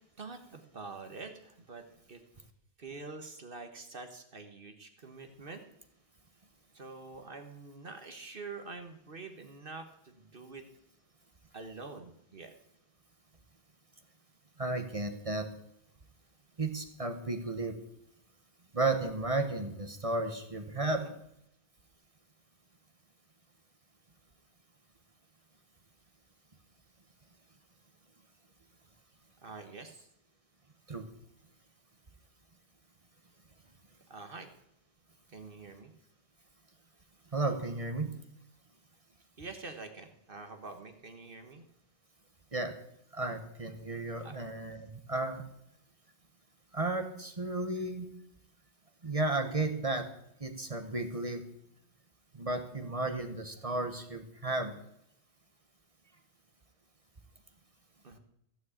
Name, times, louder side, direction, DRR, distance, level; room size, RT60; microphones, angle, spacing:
voice 1, 0.2-2.2 2.8-5.6 6.7-10.6 11.5-12.5 20.9-21.1 29.4-30.1 34.1-34.5 35.3-35.9 39.4-41.7 44.2-44.4 54.7-54.8 56.0-56.2 58.0-58.2, right 3 dB, 55° right, 6 dB, 1.5 m, -46 dB
voice 2, 14.6-15.5 16.6-17.7 18.7-21.0 30.9-31.0 37.3-38.1 42.5-42.7 43.1-45.4 46.7-48.1 49.0-50.1 50.4-51.4 52.3-54.7, right 2 dB, 30° right, 7 dB, 1.2 m, -33 dB
15.5 x 6.4 x 8.3 m, 0.75 s
omnidirectional pair, 1.1 m